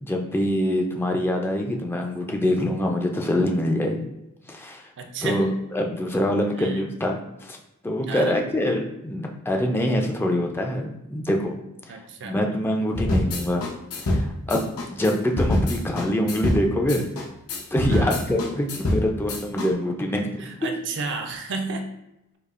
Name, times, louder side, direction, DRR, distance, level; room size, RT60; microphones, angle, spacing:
voice 1, 0.0-4.0 4.5-4.8 5.2-5.5 5.7-7.6 7.8-11.5 12.2-13.6 14.0-14.6 14.9-17.1 17.7-20.4, left 1 dB, 10° left, 1 dB, 0.3 m, -24 dB
voice 2, 5.0-5.6 6.5-6.9 8.0-8.4 11.9-12.4 17.9-18.2 20.4-21.9, right 3 dB, 55° right, 5 dB, 0.4 m, -32 dB
sound 1, 13.0-19.7, left 1 dB, 85° left, 0.7 m, -25 dB
4.9 x 2.4 x 2.4 m, 0.89 s
head